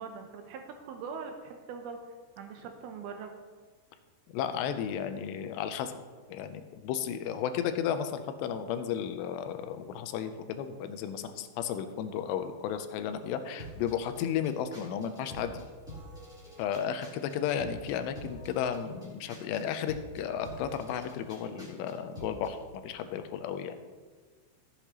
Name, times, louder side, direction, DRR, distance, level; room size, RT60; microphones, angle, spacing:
voice 1, 0.0-2.0 2.4-3.3, right 5 dB, 80° right, 4 dB, 2.4 m, -42 dB
voice 2, 4.3-6.0 6.3-15.6 16.6-22.6 22.8-23.8, left 8 dB, 85° left, 9 dB, 2.8 m, -33 dB
sound 1, 13.6-22.6, equal, ahead, 2.3 m, -47 dB
13.5 x 8.2 x 3.0 m, 1.5 s
omnidirectional pair, 4.9 m